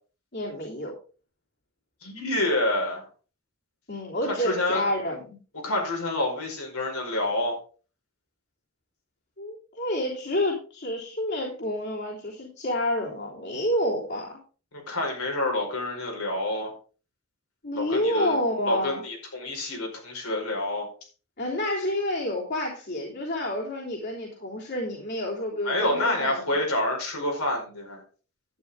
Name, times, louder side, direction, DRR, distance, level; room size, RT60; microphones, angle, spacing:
voice 1, 0.3-1.0 3.9-5.4 9.4-14.4 17.6-19.0 21.4-26.5, left 1 dB, 50° left, -3 dB, 3.2 m, -29 dB
voice 2, 2.0-3.0 4.2-4.9 5.6-7.6 14.7-16.7 17.7-18.4 18.6-20.9 25.6-28.0, left 1 dB, 85° left, 1 dB, 5.0 m, -28 dB
12.0 x 9.9 x 3.6 m, 0.36 s
head